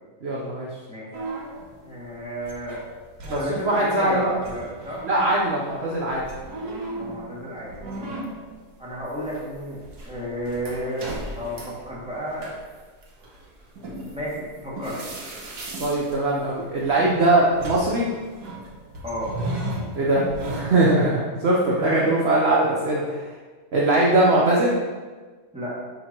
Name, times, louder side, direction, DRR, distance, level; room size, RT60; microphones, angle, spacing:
voice 1, 0.2-0.7 3.3-3.4 3.7-4.3 5.0-6.2 15.8-18.1 20.0-23.3 23.7-24.8, right 2 dB, 45° right, -4 dB, 1.0 m, -21 dB
sound 1, 1.1-4.1 4.4-20.9, right 1 dB, 75° right, 1.6 m, -36 dB
voice 2, 1.8-2.8 3.2-5.0 6.9-8.1 8.8-11.1 11.3-12.5 14.1-15.0 19.0-19.4 21.8-22.0 25.5-25.8, equal, 5° right, -7 dB, 2.0 m, -32 dB
9.7 x 5.1 x 3.0 m, 1.4 s
omnidirectional pair, 1.7 m